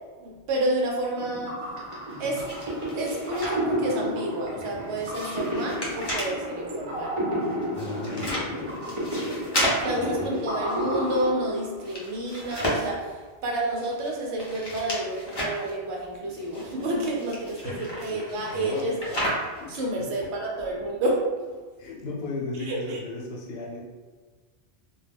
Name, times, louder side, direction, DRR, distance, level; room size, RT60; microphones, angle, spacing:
voice 1, 0.2-1.6 2.2-2.4 2.9-7.1 9.8-19.2 19.7-21.2 22.7-23.0, right 1 dB, 80° right, -1 dB, 0.9 m, -30 dB
sound 1, 1.2-12.0, equal, 35° right, 0.6 m, -31 dB
sound 2, 1.9-4.0 4.3-6.4 7.4-11.4 11.6-13.1 13.8-15.7 16.3-19.7, equal, 30° left, 0.5 m, -33 dB
voice 2, 7.7-9.3 9.8-10.3 17.6-17.8 18.1-18.9 19.6-20.3 21.8-23.8, left 3 dB, 70° left, -2 dB, 0.8 m, -36 dB
2.2 x 2.2 x 3.3 m, 1.4 s
omnidirectional pair, 1.1 m